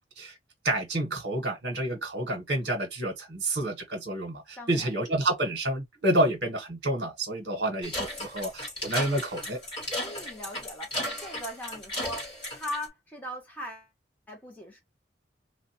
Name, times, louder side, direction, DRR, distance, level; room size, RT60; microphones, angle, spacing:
voice 1, 0.6-9.6, right 1 dB, 65° right, 1.2 m, -29 dB
voice 2, 4.6-4.9 10.0-13.9 14.3-14.8, left 1 dB, 10° left, 1.2 m, -39 dB
Clocks Ticking, 7.8-12.8, left 1 dB, 25° left, 2.1 m, -35 dB
3.1 x 2.5 x 2.8 m
head